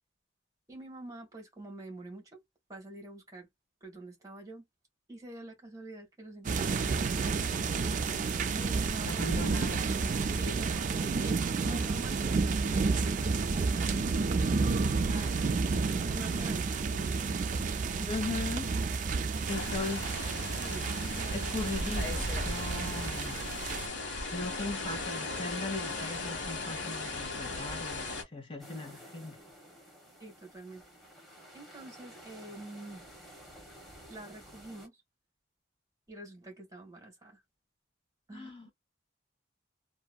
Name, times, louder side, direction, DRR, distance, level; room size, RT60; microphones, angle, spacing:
voice 1, 0.7-2.4 2.7-3.5 3.8-4.7 5.1-7.3 8.5-9.2 10.3-13.4 13.7-15.6 16.1-17.9 20.6-20.9 21.1-21.5 30.2-30.8 31.5-33.0 34.1-35.0 36.1-37.4 38.3-38.7, right 1 dB, 20° right, 1.5 m, -46 dB
sound 1, 6.4-23.9, right 4 dB, 40° right, 0.3 m, -31 dB
voice 2, 9.0-9.9 18.0-18.7 19.4-20.1 21.3-23.4 24.3-29.4 38.3-38.7, left 2 dB, 30° left, 1.2 m, -38 dB
sound 2, 19.5-28.2, left 2 dB, 70° left, 1.3 m, -37 dB
sound 3, 28.6-34.9, equal, ahead, 1.1 m, -52 dB
2.8 x 2.6 x 2.2 m
head